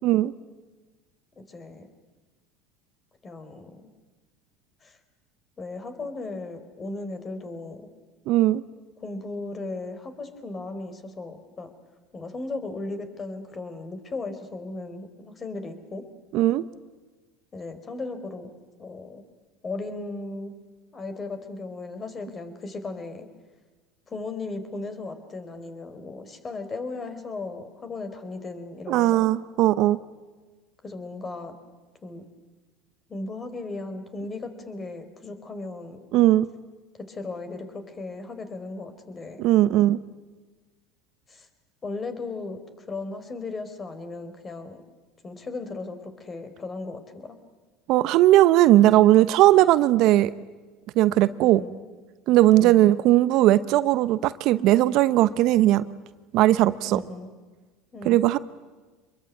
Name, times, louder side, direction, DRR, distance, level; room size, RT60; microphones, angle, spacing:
voice 1, 1.4-1.9 3.2-3.8 4.8-5.0 5.6-7.9 9.0-11.7 12.1-16.0 17.5-18.5 18.8-19.2 19.6-20.5 20.9-23.3 24.1-29.3 30.8-31.6 32.0-32.2 33.1-36.1 37.1-39.5 41.3-41.5 41.8-44.8 45.2-47.4 51.4-51.9 52.6-53.0 56.9-57.3 57.9-58.3, left 3 dB, 30° left, 9 dB, 4.3 m, -36 dB
voice 2, 8.3-8.6 16.3-16.6 28.9-30.0 36.1-36.5 39.4-40.0 47.9-50.3 50.9-51.6 52.3-55.9 56.3-57.0 58.0-58.4, right 15 dB, 60° right, 15 dB, 0.9 m, -18 dB
26.0 x 22.0 x 9.5 m, 1.3 s
hypercardioid pair, 85°, 0 cm